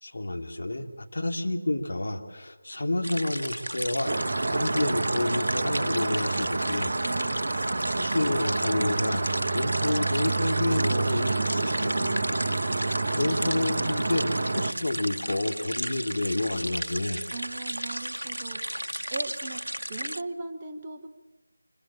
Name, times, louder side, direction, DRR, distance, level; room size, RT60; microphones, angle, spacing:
voice 1, 0.0-6.9 8.0-9.3 9.5-12.4 13.2-14.3 14.5-17.2, left 2 dB, 50° left, 2 dB, 2.9 m, -29 dB
sound 1, 3.0-20.2, equal, 80° right, 0.9 m, -34 dB
sound 2, 4.1-14.7, right 3 dB, 40° right, 1.1 m, -28 dB
voice 2, 7.0-7.6 17.3-21.1, right 3 dB, 20° right, 4 dB, 1.3 m, -39 dB
26.5 x 22.5 x 8.7 m, 1.1 s
figure-of-eight pair, 165°, 0 cm